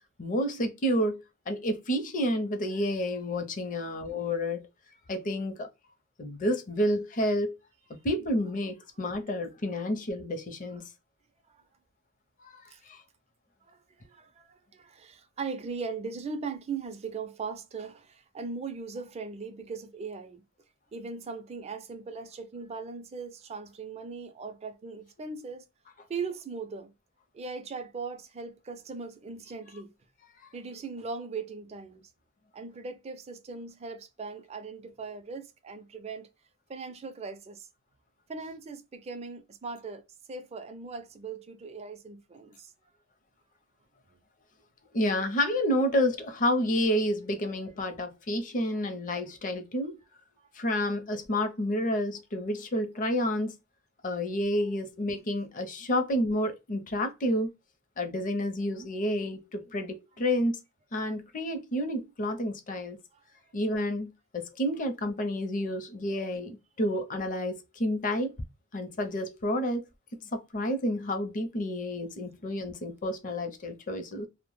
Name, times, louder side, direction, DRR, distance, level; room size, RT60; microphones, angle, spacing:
voice 1, 0.2-4.6 5.1-5.7 6.2-7.6 8.0-10.9 12.4-12.6 12.9-13.0 44.9-50.0 50.5-53.5 54.0-57.5 58.0-60.6 60.9-63.0 63.5-68.4 68.7-69.8 70.2-74.3, equal, 40° left, 0.5 m, -30 dB
voice 2, 13.6-20.4 20.9-25.7 26.1-26.9 27.3-29.9 30.5-32.1 32.5-36.3 36.7-37.7 38.3-40.0 40.3-42.7 50.4-50.5 63.1-63.2, right 4 dB, 30° right, 0.4 m, -39 dB
2.0 x 2.0 x 3.0 m
head